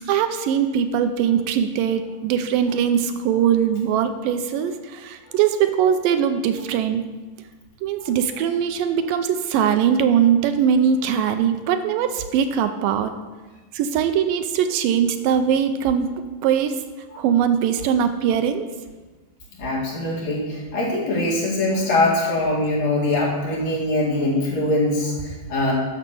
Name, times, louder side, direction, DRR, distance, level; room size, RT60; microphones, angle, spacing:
voice 1, 0.1-4.7 5.0-7.0 7.8-13.1 13.8-16.1 16.4-16.7 17.2-18.7, right 8 dB, 80° right, 9 dB, 2.3 m, -21 dB
voice 2, 19.6-25.7, left 2 dB, 55° left, -4 dB, 3.2 m, -22 dB
9.3 x 6.5 x 6.9 m, 1.2 s
omnidirectional pair, 3.9 m